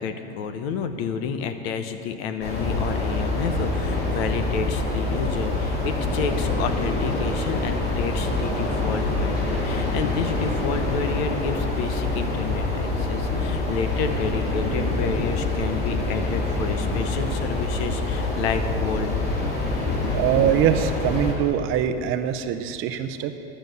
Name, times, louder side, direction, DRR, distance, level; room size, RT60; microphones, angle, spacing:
voice 1, 0.0-19.1, left 6 dB, 75° left, 9 dB, 1.0 m, -30 dB
sound 1, 2.4-21.3, left 2 dB, 30° left, 2.4 m, -26 dB
voice 2, 20.1-23.3, right 9 dB, 40° right, 9 dB, 0.6 m, -23 dB
11.5 x 7.1 x 7.9 m, 2.7 s
supercardioid pair, 140°, 32 cm